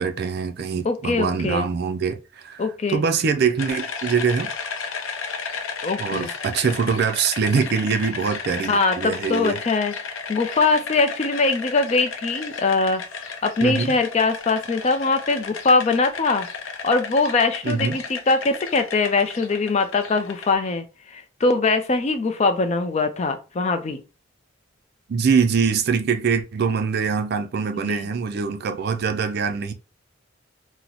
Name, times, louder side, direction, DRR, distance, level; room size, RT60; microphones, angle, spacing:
voice 1, 0.0-4.5 6.0-9.6 13.6-13.9 17.6-18.0 25.1-29.7, right 5 dB, 50° right, 0.4 m, -23 dB
voice 2, 0.8-1.7 2.6-3.0 5.8-6.3 8.7-16.5 16.8-24.0 27.8-28.1, left 3 dB, 35° left, 0.3 m, -22 dB
sound 1, 3.6-20.5, left 5 dB, 75° left, 0.6 m, -34 dB
2.9 x 2.0 x 3.8 m
head